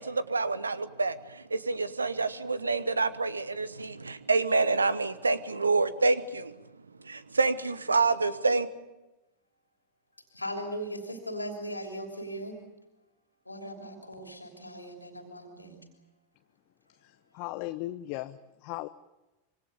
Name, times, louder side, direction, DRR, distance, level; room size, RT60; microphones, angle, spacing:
voice 1, 0.0-6.5 7.0-8.7, right 3 dB, 75° right, 16 dB, 1.2 m, -27 dB
voice 2, 10.3-12.6 13.5-15.8, equal, 85° left, 4 dB, 3.2 m, -38 dB
voice 3, 17.0-18.9, left 17 dB, 45° left, 10 dB, 0.8 m, -37 dB
26.0 x 24.0 x 6.9 m, 1.0 s
figure-of-eight pair, 90°, 0 cm